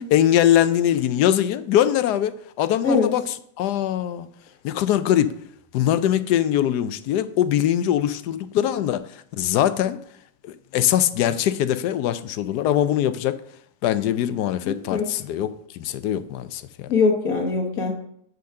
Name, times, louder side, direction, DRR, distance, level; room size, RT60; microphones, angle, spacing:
voice 1, 0.1-3.2 3.6-4.3 4.6-5.3 5.7-10.0 10.4-13.4 13.8-16.9, left 11 dB, 70° left, 1.1 m, -22 dB
voice 2, 14.6-15.1 16.9-17.9, left 4 dB, 55° left, 1.4 m, -22 dB
9.3 x 3.9 x 6.5 m
omnidirectional pair, 2.0 m